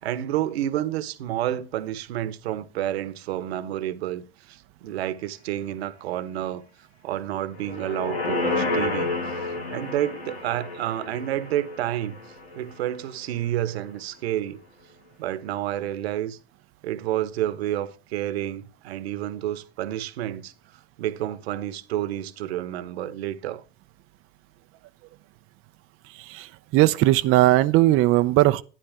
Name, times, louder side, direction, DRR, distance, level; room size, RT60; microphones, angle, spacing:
voice 1, 0.0-4.2 4.5-6.6 7.0-9.2 9.7-12.2 12.5-14.6 15.2-16.4 16.8-20.5 21.0-23.6, right 12 dB, 75° right, 1.3 m, -29 dB
sound 1, 7.5-12.9 13.3-13.4, left 2 dB, 90° left, 3.1 m, -30 dB
voice 2, 26.2-28.6, right 16 dB, 45° right, 0.7 m, -19 dB
12.0 x 9.5 x 3.6 m
hypercardioid pair, 90°, 31 cm